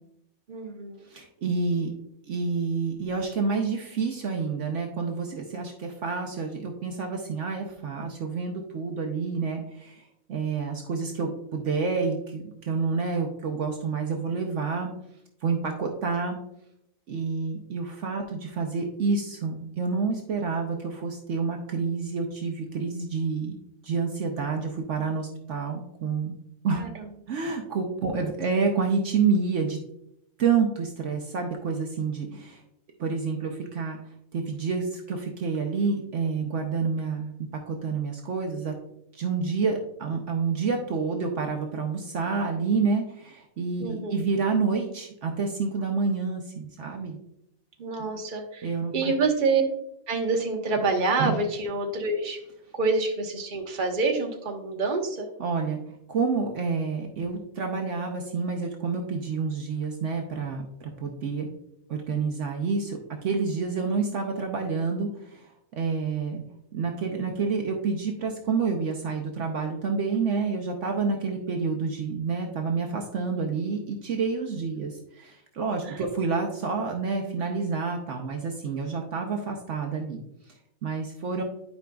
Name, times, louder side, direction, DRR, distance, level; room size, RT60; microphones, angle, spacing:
voice 1, 0.5-1.1 26.8-27.0 28.2-28.3 43.8-44.2 47.8-48.7 48.9-49.6 50.1-52.4 52.8-55.3 74.8-74.9 75.8-76.0, right 3 dB, 40° right, 2 dB, 1.1 m, -27 dB
voice 2, 1.1-1.9 2.3-10.0 10.3-14.9 15.4-16.4 17.1-26.3 26.6-26.8 27.3-29.8 30.4-32.6 33.0-34.0 34.3-37.3 37.7-38.7 39.1-47.2 48.6-49.1 51.2-51.4 55.4-55.8 56.1-61.5 61.9-66.4 66.7-80.2 80.8-81.4, right 4 dB, 65° right, 2 dB, 1.1 m, -28 dB
11.0 x 5.1 x 2.3 m, 0.79 s
omnidirectional pair, 1.4 m